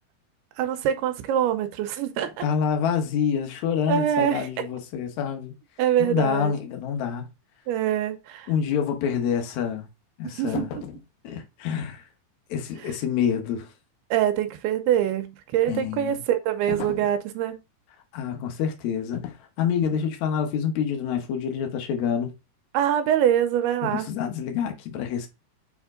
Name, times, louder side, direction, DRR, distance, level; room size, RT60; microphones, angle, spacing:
voice 1, 0.6-2.4 3.9-4.5 5.8-6.5 7.7-8.5 10.2-10.8 14.1-17.6 22.7-24.1, right 10 dB, 85° right, 2.7 m, -24 dB
voice 2, 2.4-5.5 6.0-7.3 8.5-9.9 10.2-10.7 11.2-12.0 12.5-13.7 15.7-16.2 18.1-22.3 23.8-25.3, left 7 dB, 65° left, 1.9 m, -27 dB
sound 1, 10.5-11.1 16.7-17.2 19.1-19.5 19.8-20.1, left 12 dB, 85° left, 2.5 m, -36 dB
7.1 x 3.6 x 3.7 m
omnidirectional pair, 4.5 m